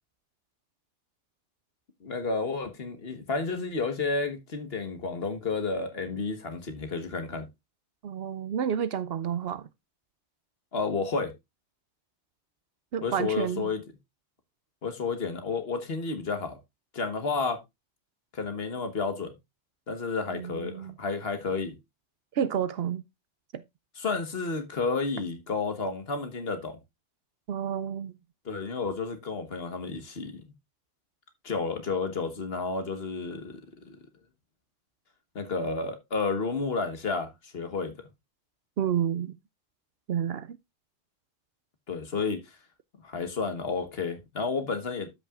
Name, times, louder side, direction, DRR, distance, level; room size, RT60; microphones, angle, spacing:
voice 1, 2.0-7.5 10.7-11.3 13.0-13.8 14.8-16.6 16.9-17.6 18.3-19.3 19.9-21.7 24.0-26.8 28.4-30.4 31.4-34.0 35.3-37.9 41.9-42.4 43.0-45.1, left 4 dB, 55° left, 1.6 m, -31 dB
voice 2, 8.0-9.7 12.9-13.7 20.3-21.0 22.3-23.0 23.5-23.6 27.5-28.1 38.8-39.4 40.1-40.6, right 8 dB, 65° right, 0.7 m, -30 dB
13.0 x 5.7 x 2.4 m
omnidirectional pair, 1.2 m